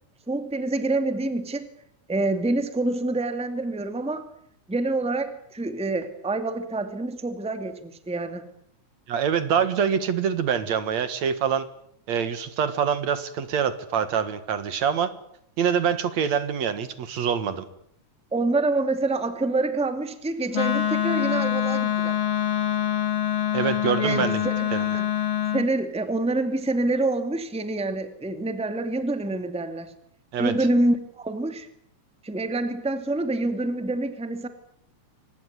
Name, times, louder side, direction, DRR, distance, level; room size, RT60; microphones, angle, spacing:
voice 1, 0.3-1.7 2.1-4.3 4.7-8.5 18.3-22.2 24.0-25.1 25.5-29.9 30.4-31.7 32.2-34.5, right 2 dB, ahead, 9 dB, 1.8 m, -26 dB
voice 2, 9.1-11.7 12.1-15.1 15.6-17.6 23.5-24.4 24.7-24.9 30.3-30.5, right 7 dB, 65° right, 12 dB, 2.8 m, -25 dB
Wind instrument woodwind instrument, 20.5-25.7, left 10 dB, 40° left, 2.7 m, -25 dB
25.0 x 20.0 x 9.4 m, 0.70 s
omnidirectional pair, 3.5 m